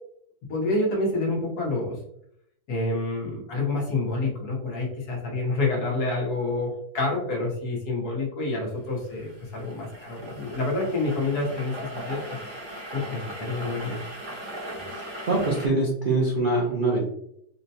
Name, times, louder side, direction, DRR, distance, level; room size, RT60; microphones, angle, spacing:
voice 1, 0.5-2.0 2.7-12.4 12.9-14.0, left 2 dB, 70° left, -2 dB, 1.5 m, -28 dB
sound 1, 8.9-15.7, right 1 dB, 20° right, 0.8 m, -38 dB
voice 2, 14.9-17.1, right 2 dB, 90° right, -2 dB, 0.4 m, -24 dB
4.3 x 2.1 x 2.7 m, 0.72 s
omnidirectional pair, 1.8 m